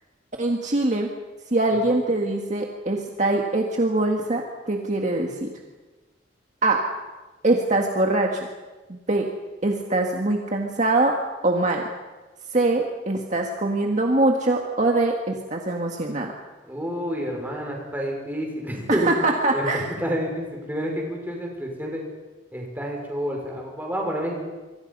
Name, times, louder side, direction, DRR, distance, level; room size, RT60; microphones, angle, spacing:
voice 1, 0.4-1.1 1.5-5.5 6.6-6.8 7.4-8.5 8.9-9.3 9.6-11.1 11.4-11.8 12.5-16.3 18.9-19.9, right 2 dB, 40° right, 1 dB, 1.8 m, -23 dB
voice 2, 16.7-22.0 22.5-24.4, equal, 10° right, 0 dB, 5.6 m, -29 dB
26.5 x 24.5 x 5.5 m, 1.2 s
head